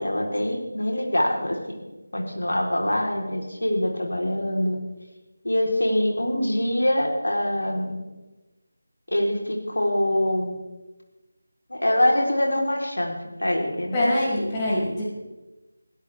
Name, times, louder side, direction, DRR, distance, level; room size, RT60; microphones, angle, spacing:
voice 1, 0.0-1.8 2.1-4.8 5.4-8.0 9.1-10.6 11.7-14.1, left 1 dB, 85° left, 0 dB, 4.2 m, -24 dB
voice 2, 13.9-15.0, left 1 dB, 20° left, -7 dB, 6.6 m, -24 dB
20.5 x 16.5 x 3.7 m, 1.1 s
figure-of-eight pair, 165°, 0 cm